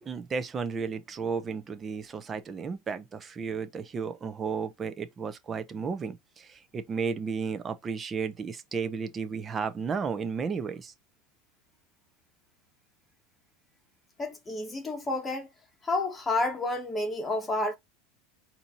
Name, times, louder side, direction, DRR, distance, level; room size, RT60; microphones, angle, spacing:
voice 1, 0.0-10.9, right 5 dB, 20° right, 0.7 m, -33 dB
voice 2, 14.2-15.5 15.8-17.8, left 2 dB, 15° left, 1.6 m, -30 dB
4.2 x 2.9 x 4.0 m
supercardioid pair, 140°, 0 cm